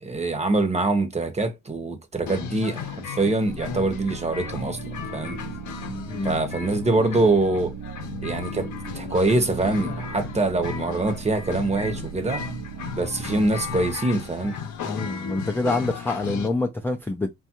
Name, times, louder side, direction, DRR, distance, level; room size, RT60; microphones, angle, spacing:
voice 1, 0.0-4.8 5.1-5.4 6.2-7.7 8.2-8.7 8.9-12.4 12.9-14.6, right 2 dB, 20° right, 0.8 m, -24 dB
sound 1, 2.3-16.5, left 7 dB, 75° left, 0.7 m, -35 dB
sound 2, 3.4-15.2, right 7 dB, 55° right, 0.5 m, -38 dB
voice 2, 14.8-17.3, left 2 dB, 5° left, 0.3 m, -26 dB
3.4 x 2.4 x 2.8 m
cardioid pair, 90°, 30 cm